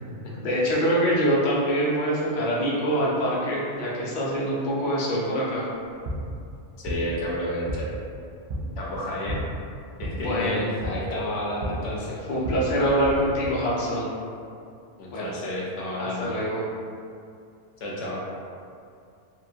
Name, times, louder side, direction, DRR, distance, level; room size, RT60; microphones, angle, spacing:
voice 1, 0.3-5.6 10.1-10.6 12.3-14.1 15.1-15.3 16.0-16.6, equal, 50° left, -6 dB, 0.6 m, -25 dB
sound 1, 5.8-13.5, equal, 55° right, 0.5 m, -35 dB
voice 2, 6.8-8.0 8.8-9.4 10.0-12.2 15.0-16.4 17.8-18.2, left 1 dB, 80° left, -4 dB, 0.9 m, -31 dB
2.9 x 2.4 x 2.6 m, 2.4 s
omnidirectional pair, 1.2 m